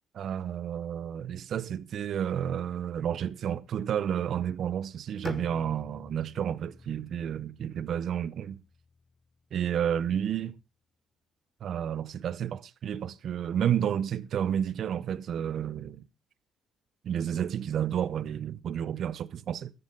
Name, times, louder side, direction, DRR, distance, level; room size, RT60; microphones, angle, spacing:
voice 1, 0.1-8.6 9.5-10.6 11.6-16.1 17.0-19.7, right 9 dB, 55° right, 0.7 m, -31 dB
Bowed string instrument, 5.2-9.2, left 4 dB, 25° left, 0.6 m, -47 dB
14.5 x 12.0 x 3.8 m
cardioid pair, 125°, 0 cm